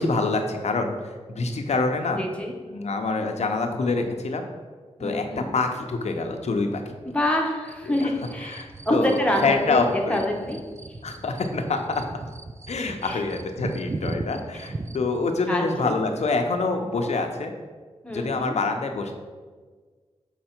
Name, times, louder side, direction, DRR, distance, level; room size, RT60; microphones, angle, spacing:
voice 1, 0.0-2.2 2.7-4.4 5.0-6.9 7.8-8.1 8.4-10.2 11.0-12.0 12.7-17.5 18.1-19.1, left 3 dB, 75° left, 5 dB, 0.8 m, -26 dB
voice 2, 2.1-2.5 5.0-5.5 7.0-10.6 13.0-13.2 15.5-16.0 18.0-18.6, left 1 dB, 10° left, 0 dB, 1.1 m, -26 dB
sound 1, 7.7-15.2, right 2 dB, 25° right, 0.3 m, -38 dB
6.6 x 4.7 x 4.4 m, 1.5 s
wide cardioid pair, 100°, 11 cm